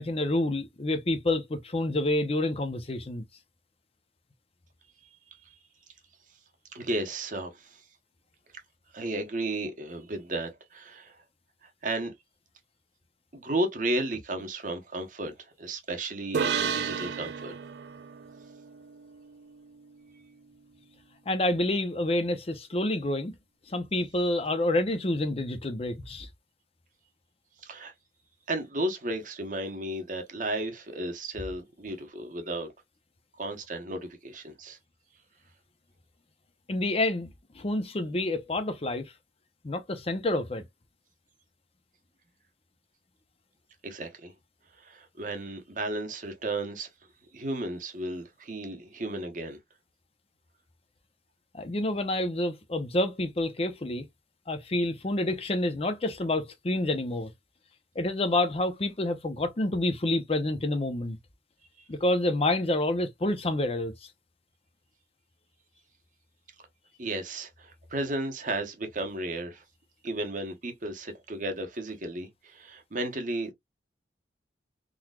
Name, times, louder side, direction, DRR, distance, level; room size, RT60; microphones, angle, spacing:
voice 1, 0.0-3.2 21.3-23.3 23.7-26.3 36.7-37.3 37.6-39.1 39.6-40.6 51.5-54.1 54.5-57.3 58.0-61.2 61.9-63.9, left 1 dB, 35° left, 0.6 m, -28 dB
voice 2, 6.7-7.8 8.9-11.2 11.6-12.1 13.3-17.6 27.6-27.9 28.5-32.7 33.4-34.8 43.8-44.3 44.7-46.9 47.3-49.6 67.0-69.6 70.0-73.5, right 1 dB, 45° right, 1.0 m, -34 dB
sound 1, 16.3-19.8, right 6 dB, 65° right, 0.4 m, -33 dB
3.9 x 3.0 x 2.2 m
head